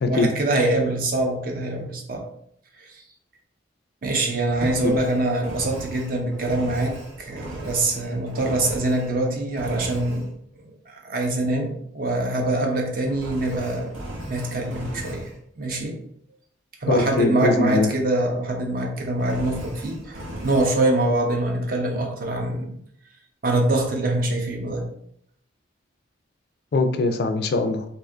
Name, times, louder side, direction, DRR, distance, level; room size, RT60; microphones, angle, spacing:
voice 1, 0.1-2.3 2.8-2.9 4.0-10.3 10.9-13.9 14.3-15.3 15.6-16.0 16.8-22.8 23.4-24.9, right 2 dB, 45° right, 2 dB, 0.5 m, -24 dB
Engine, 4.5-9.2 9.5-10.3 13.1-15.4 19.2-20.7, right 1 dB, 90° right, 0.7 m, -38 dB
voice 2, 16.9-17.9 26.7-27.8, left 3 dB, 55° left, 7 dB, 0.3 m, -21 dB
2.7 x 2.4 x 3.3 m, 0.69 s
head